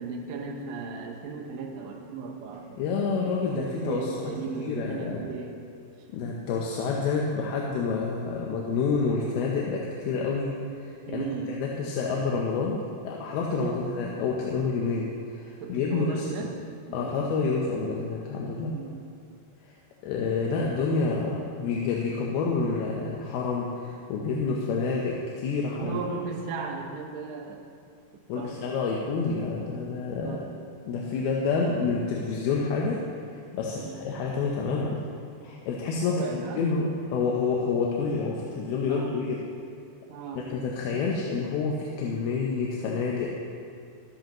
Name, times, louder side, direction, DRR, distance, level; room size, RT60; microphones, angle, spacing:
voice 1, 0.0-5.6 11.1-11.6 13.5-14.2 15.6-16.6 16.9-17.3 18.7-19.0 25.8-27.7 28.1-28.6 30.2-30.5 33.6-34.0 36.0-36.6 38.9-39.2 40.1-40.5, right 4 dB, 70° right, 1 dB, 2.3 m, -36 dB
voice 2, 2.8-4.1 4.6-5.2 6.1-11.2 11.6-16.5 16.9-18.8 19.6-19.7 20.0-26.0 28.3-30.4 30.9-33.0 33.3-35.0 35.4-39.4 40.3-43.4, left 4 dB, 75° left, -2 dB, 2.7 m, -28 dB
15.5 x 12.5 x 3.1 m, 2.3 s
omnidirectional pair, 4.8 m